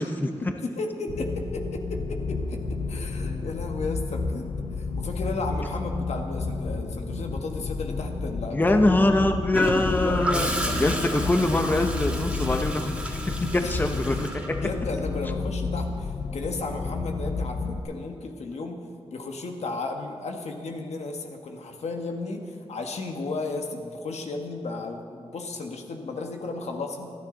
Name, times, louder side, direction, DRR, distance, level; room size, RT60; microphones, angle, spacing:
voice 1, 0.4-8.8 9.1-9.3 10.0-11.3 13.6-13.8 14.6-27.1, left 3 dB, 85° left, 3 dB, 1.6 m, -34 dB
sound 1, 1.1-17.8, left 4 dB, 60° left, 1.0 m, -31 dB
voice 2, 8.5-10.5 10.8-14.6, left 2 dB, 15° left, 6 dB, 0.8 m, -24 dB
Gurgling / Toilet flush, 9.5-15.3 17.3-17.5, right 1 dB, 10° right, 1.6 m, -32 dB
27.0 x 9.9 x 3.9 m, 2.3 s
wide cardioid pair, 115°, 11 cm